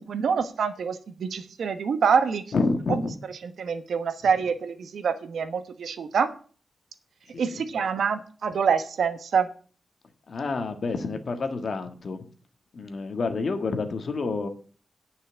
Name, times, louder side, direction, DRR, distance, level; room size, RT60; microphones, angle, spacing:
voice 1, 0.0-2.4 3.6-6.3 7.4-9.5, right 6 dB, 80° right, 10 dB, 1.1 m, -26 dB
voice 2, 2.5-3.1 7.3-7.7 10.3-12.2 12.7-14.5, left 3 dB, 50° left, 7 dB, 1.5 m, -28 dB
9.8 x 5.6 x 8.4 m, 0.41 s
wide cardioid pair, 165°, 0 cm